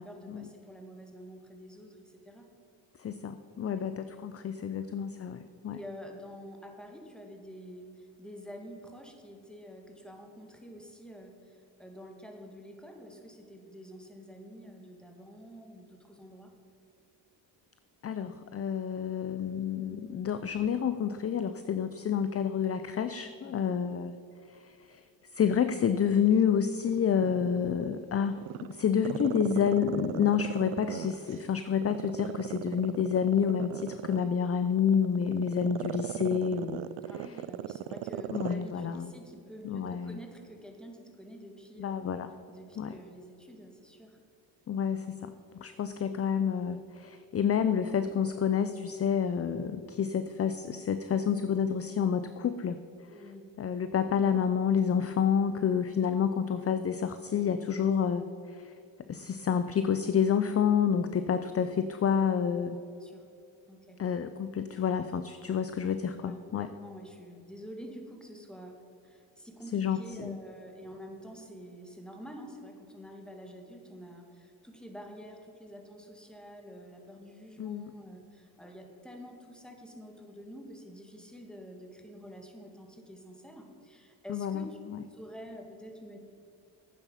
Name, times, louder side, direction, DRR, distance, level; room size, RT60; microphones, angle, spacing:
voice 1, 0.0-2.5 3.8-3.9 4.6-4.7 5.7-16.5 23.4-23.7 37.1-42.0 42.5-44.2 53.1-53.5 62.9-63.3 63.7-64.0 66.2-84.8 85.1-86.2, equal, ahead, 3 dB, 2.1 m, -48 dB
voice 2, 3.0-5.8 18.0-24.1 24.6-25.0 25.3-28.4 28.7-36.8 38.3-39.1 39.6-40.2 41.8-42.3 42.8-42.9 44.7-52.8 53.6-58.2 58.5-58.7 59.1-62.8 64.0-66.7 69.7-70.4 77.6-77.9 84.3-84.6 84.9-85.0, left 7 dB, 30° left, 11 dB, 0.6 m, -29 dB
Growling, 26.2-28.0 28.4-31.4 31.8-38.6 38.9-39.0, right 14 dB, 75° right, 0.6 m, -37 dB
11.5 x 8.9 x 5.6 m, 2.7 s
cardioid pair, 85°, 48 cm